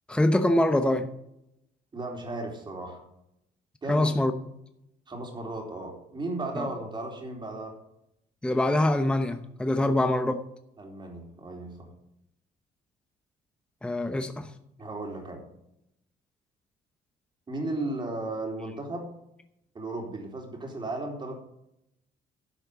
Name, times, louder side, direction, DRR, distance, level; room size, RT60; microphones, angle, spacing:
voice 1, 0.1-1.1 3.9-4.3 6.6-6.7 8.4-10.4 13.8-14.5, left 1 dB, 5° left, 8 dB, 0.9 m, -24 dB
voice 2, 1.9-3.0 3.8-4.2 5.1-7.8 10.8-11.9 14.8-15.4 17.5-19.1 19.7-21.4, right 2 dB, 25° right, 2 dB, 3.9 m, -35 dB
12.0 x 6.5 x 8.2 m, 0.80 s
cardioid pair, 110°, 17 cm